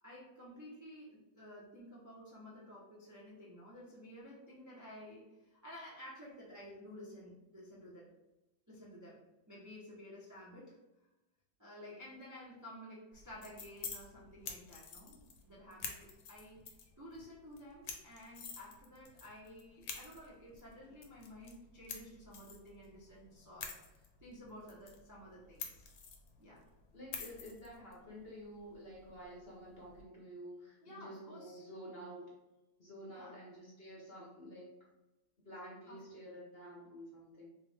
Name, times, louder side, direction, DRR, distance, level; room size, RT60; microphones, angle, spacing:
voice 1, 0.0-8.1 8.7-9.2 9.5-10.8 11.6-25.8 26.4-26.6 30.8-31.6 33.1-33.4 35.9-36.0, left 1 dB, 25° right, -7 dB, 0.3 m, -53 dB
sound 1, 13.1-30.0, left 6 dB, 70° left, 1.0 m, -50 dB
voice 2, 26.9-32.3 32.8-34.7 35.4-37.5, equal, 45° left, -5 dB, 0.8 m, -50 dB
3.3 x 3.1 x 3.4 m, 0.99 s
omnidirectional pair, 1.9 m